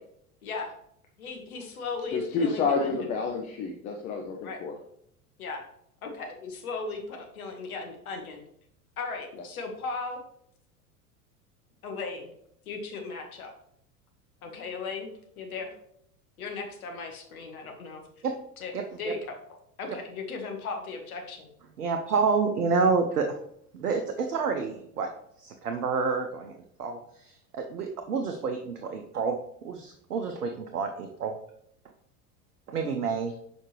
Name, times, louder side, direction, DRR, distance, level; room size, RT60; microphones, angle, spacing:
voice 1, 1.2-3.1 4.4-4.6 5.4-5.6 6.0-8.4 9.0-10.2 11.8-12.3 12.6-13.5 14.4-15.7 16.4-18.0 18.6-18.7 19.0-21.5, left 4 dB, 65° left, 3 dB, 1.4 m, -37 dB
voice 2, 2.1-4.7, left 4 dB, 20° left, 2 dB, 0.3 m, -29 dB
voice 3, 21.8-23.3 23.7-25.1 25.4-26.5 26.8-29.3 29.6-31.4 32.7-33.3, right 5 dB, 75° right, 4 dB, 0.7 m, -28 dB
6.4 x 5.1 x 3.1 m, 0.71 s
figure-of-eight pair, 80°, 46 cm